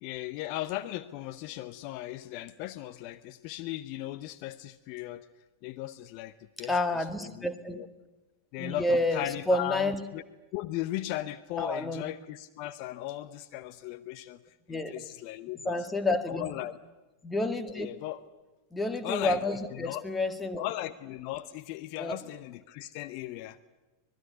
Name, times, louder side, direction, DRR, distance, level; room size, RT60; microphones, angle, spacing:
voice 1, 0.0-5.2 5.6-6.3 6.6-7.5 7.8-7.9 8.5-10.2 10.5-14.4 14.7-15.8 16.3-16.7 17.7-18.2 19.0-19.4 19.7-20.0 20.6-23.6, left 15 dB, 45° left, 13 dB, 0.8 m, -37 dB
voice 2, 6.6-7.8 8.6-10.0 11.6-12.0 14.7-14.9 15.7-16.5 17.2-17.9 18.7-20.6 22.0-22.2, left 2 dB, 10° left, 9 dB, 2.0 m, -29 dB
25.0 x 21.0 x 9.7 m, 1.1 s
figure-of-eight pair, 90°, 0 cm